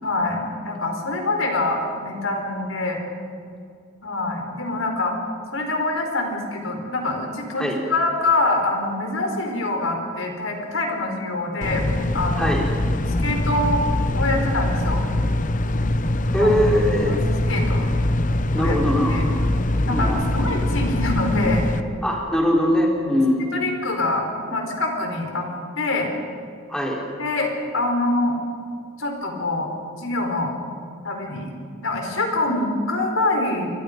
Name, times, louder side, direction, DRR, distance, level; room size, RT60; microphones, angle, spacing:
voice 1, 0.0-3.0 4.0-5.1 5.5-11.9 12.1-12.6 13.2-13.8 14.1-15.0 16.4-16.5 17.1-17.9 18.6-18.8 19.0-19.3 19.8-21.6 23.5-25.4 25.8-26.1 27.2-28.4 29.0-30.5 31.0-31.5 31.8-33.7, left 2 dB, 85° left, 2 dB, 4.6 m, -25 dB
sound 1, 11.6-21.8, left 1 dB, 40° left, 0.9 m, -23 dB
voice 2, 16.3-17.1 18.5-19.4 19.9-20.2 22.0-23.6 26.7-27.0, equal, 5° left, -2 dB, 3.8 m, -21 dB
29.5 x 24.0 x 5.3 m, 2.3 s
head